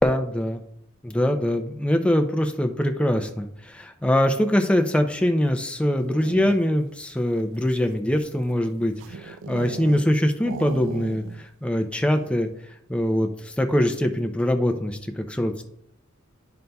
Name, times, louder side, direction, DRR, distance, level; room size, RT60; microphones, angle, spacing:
voice 1, 0.0-0.6 1.0-12.5 12.9-15.6, left 1 dB, 5° left, 5 dB, 0.4 m, -23 dB
sound 1, 5.9-6.9 7.5-10.1 10.4-11.5 11.7-11.8 12.1-12.5, right 5 dB, 60° right, 0.3 m, -37 dB
10.5 x 5.3 x 2.3 m, 0.75 s
head